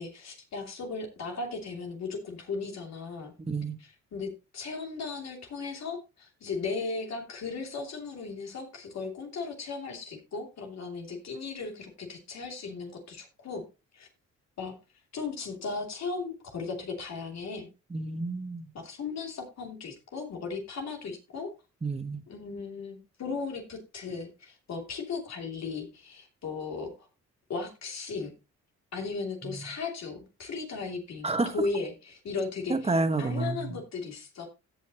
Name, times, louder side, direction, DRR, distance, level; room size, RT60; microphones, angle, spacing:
voice 1, 0.0-3.3 3.8-13.6 13.9-14.1 14.6-14.7 15.1-17.7 18.7-21.5 22.3-27.1 27.5-28.3 28.9-31.3 31.5-34.5, left 4 dB, 60° left, 2.9 m, -36 dB
voice 2, 17.9-18.7 21.8-22.2 29.4-29.7 31.2-31.5 32.7-33.7, right 3 dB, 20° right, 1.5 m, -29 dB
16.5 x 5.7 x 3.0 m
cardioid pair, 90°, 30 cm